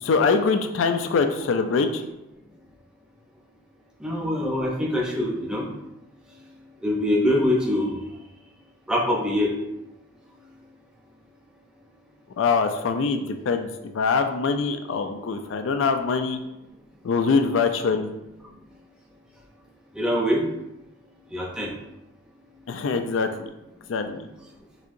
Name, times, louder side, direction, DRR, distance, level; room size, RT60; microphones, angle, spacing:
voice 1, 0.0-2.0 12.4-16.4 17.0-18.1 22.7-23.5 23.9-24.3, left 4 dB, 65° left, 7 dB, 0.3 m, -23 dB
voice 2, 4.0-5.7 6.8-8.0 8.9-9.5 20.0-20.4 21.3-21.7, left 1 dB, 5° right, -3 dB, 0.7 m, -23 dB
6.0 x 2.8 x 2.6 m, 0.93 s
head